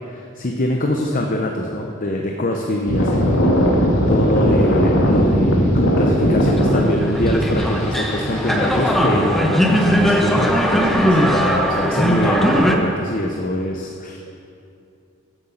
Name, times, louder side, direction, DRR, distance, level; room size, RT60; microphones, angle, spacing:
voice 1, 0.1-3.5 4.1-14.2, left 1 dB, 45° left, 1 dB, 0.9 m, -23 dB
sound 1, 2.9-8.9, equal, 80° left, 2.0 m, -18 dB
sound 2, 6.5-12.7, equal, ahead, 1.0 m, -19 dB
14.5 x 8.0 x 5.8 m, 2.5 s
head